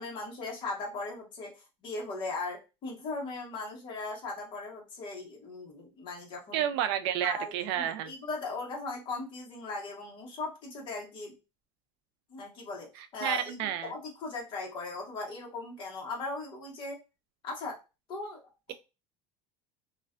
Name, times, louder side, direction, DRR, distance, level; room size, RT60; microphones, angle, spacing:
voice 1, 0.0-6.6 7.2-11.3 12.3-13.6 13.8-17.0 17.4-17.8 18.1-18.4 18.7-18.8, left 3 dB, 40° left, -1 dB, 1.0 m, -38 dB
voice 2, 6.5-8.1 13.0-13.9, right 10 dB, 85° right, 10 dB, 0.4 m, -31 dB
2.4 x 2.1 x 2.4 m, 0.28 s
cardioid pair, 155°, 13 cm